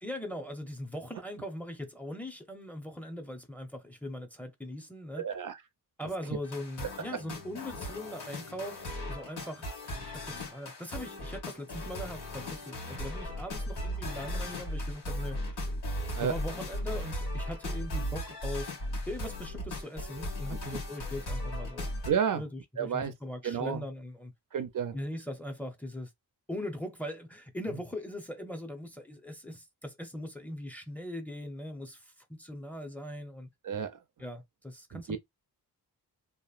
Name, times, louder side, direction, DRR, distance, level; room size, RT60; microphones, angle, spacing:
voice 1, 0.0-5.3 6.0-15.7 16.2-18.8 19.1-21.9 22.3-24.3 24.9-26.1 26.5-33.5 34.2-35.2, left 1 dB, 5° left, 0.7 m, -40 dB
voice 2, 5.2-5.6 16.2-16.4 22.1-22.4 22.8-23.1 23.4-23.8 24.5-25.0 33.6-34.0 34.9-35.2, right 7 dB, 55° right, 0.5 m, -31 dB
sound 1, 6.4-22.1, left 1 dB, 80° left, 1.5 m, -37 dB
2.9 x 2.6 x 2.4 m
wide cardioid pair, 100°, 39 cm